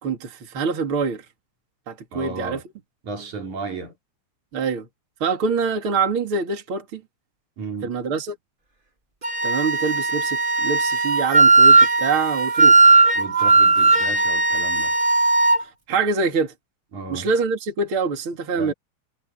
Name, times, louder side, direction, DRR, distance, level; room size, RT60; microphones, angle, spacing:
voice 1, 0.0-1.3 1.9-2.6 4.5-4.9 5.2-7.0 7.8-8.4 9.4-12.8 15.6-16.5 17.1-18.7, right 4 dB, 45° right, 3.4 m, -25 dB
voice 2, 2.1-2.6 3.0-3.9 7.6-7.9 13.2-14.9 16.9-17.3 18.5-18.7, right 3 dB, 80° right, 5.7 m, -33 dB
Wind instrument woodwind instrument, 9.2-15.6, right 3 dB, 20° right, 2.6 m, -17 dB
omnidirectional pair, 3.3 m